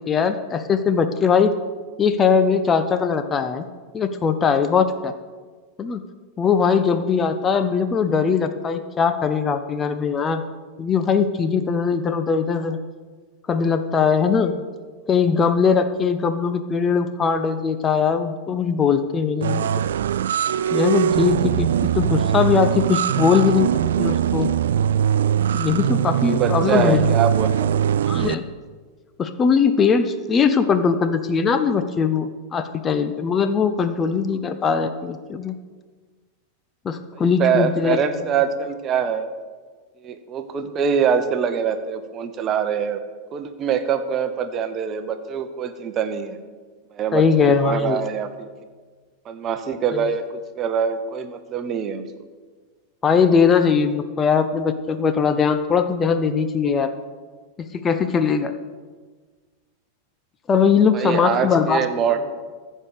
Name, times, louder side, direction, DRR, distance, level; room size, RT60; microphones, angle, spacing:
voice 1, 0.1-1.5 2.0-3.6 3.9-5.1 5.8-6.0 6.4-10.4 10.8-12.8 13.5-14.5 15.1-19.7 20.7-23.7 24.0-24.5 25.5-27.1 28.1-28.4 29.2-35.5 36.8-38.0 47.1-48.0 49.9-50.0 53.0-56.9 57.7-58.5 60.5-61.8, left 6 dB, 20° left, 9 dB, 0.7 m, -20 dB
sound 1, 19.4-28.3, right 9 dB, 60° right, 0.3 m, -21 dB
voice 2, 26.2-27.9 37.1-39.3 40.0-43.0 43.3-46.4 46.9-48.5 49.2-52.1 60.9-62.2, right 7 dB, 30° right, 9 dB, 0.9 m, -24 dB
15.0 x 5.5 x 6.5 m, 1.5 s
figure-of-eight pair, 90°, 0 cm